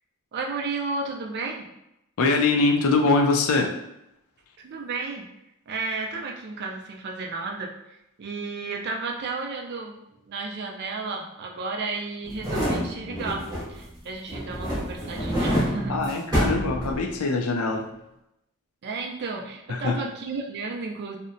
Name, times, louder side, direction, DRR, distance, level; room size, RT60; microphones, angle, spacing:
voice 1, 0.3-1.7 4.6-5.3 5.7-10.0 10.2-13.4 13.7-16.0 18.8-21.2, right 3 dB, 50° right, 1 dB, 0.4 m, -33 dB
voice 2, 2.2-3.7 15.9-17.9 19.7-20.1, left 3 dB, 70° left, 3 dB, 0.4 m, -23 dB
sound 1, 12.3-13.9 14.3-17.4 17.7-17.8, equal, 20° right, 0.7 m, -27 dB
2.7 x 2.1 x 2.5 m, 0.86 s
head